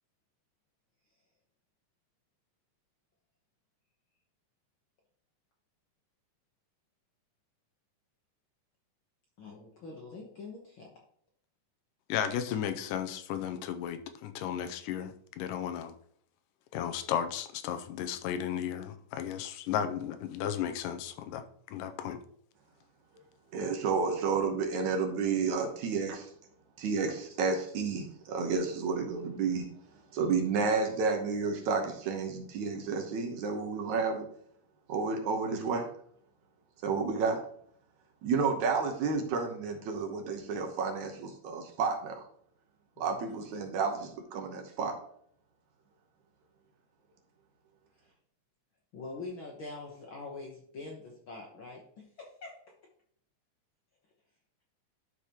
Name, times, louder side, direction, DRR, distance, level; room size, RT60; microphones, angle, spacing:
voice 1, 9.4-10.9 43.0-43.2 48.9-52.5, left 3 dB, 60° left, 1.3 m, -44 dB
voice 2, 12.1-15.9 16.7-22.2, left 9 dB, 85° left, 2.2 m, -34 dB
voice 3, 23.5-26.3 26.8-29.7 30.1-34.3 34.9-35.9 36.8-37.4 38.2-42.2 43.0-45.0, right 5 dB, 70° right, 2.3 m, -31 dB
12.0 x 4.9 x 2.9 m
omnidirectional pair, 3.8 m